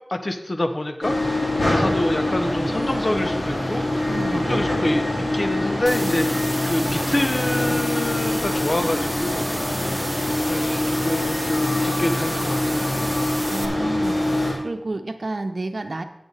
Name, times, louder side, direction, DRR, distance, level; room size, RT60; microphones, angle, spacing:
voice 1, 0.1-1.2 1.7-3.8 4.3-5.1 5.3-6.2 6.6-9.5 10.4-13.0, left 1 dB, 55° left, 7 dB, 1.0 m, -26 dB
sound 1, 1.0-14.5, left 1 dB, 80° left, 2.7 m, -24 dB
voice 2, 4.1-4.7 6.0-6.1 13.5-14.2 14.6-16.0, right 2 dB, 75° right, 7 dB, 0.8 m, -30 dB
sound 2, 5.9-13.7, equal, ahead, 1.5 m, -32 dB
9.8 x 8.8 x 4.0 m, 0.89 s
wide cardioid pair, 45°, 0 cm